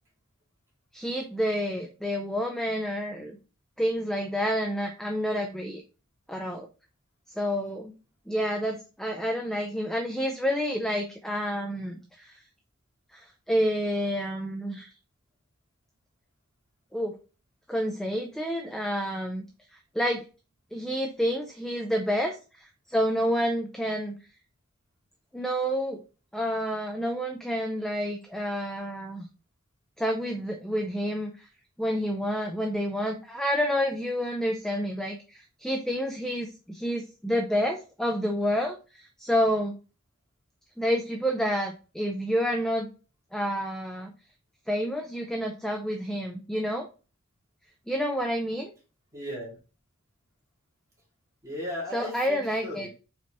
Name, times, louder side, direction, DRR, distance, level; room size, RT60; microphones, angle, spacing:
voice 1, 0.9-3.4 3.8-5.8 6.3-6.7 7.4-7.9 8.3-12.3 13.1-14.9 16.9-17.1 17.7-19.4 19.9-20.2 20.7-24.1 25.3-26.0 26.3-29.3 30.0-31.5 31.8-39.8 40.8-42.9 43.3-44.1 44.7-46.9 47.9-48.7 51.9-52.9, equal, ahead, 3 dB, 0.4 m, -29 dB
voice 2, 49.1-49.6 51.4-52.9, left 1 dB, 15° right, -4 dB, 2.1 m, -36 dB
4.4 x 4.0 x 3.0 m, 0.34 s
head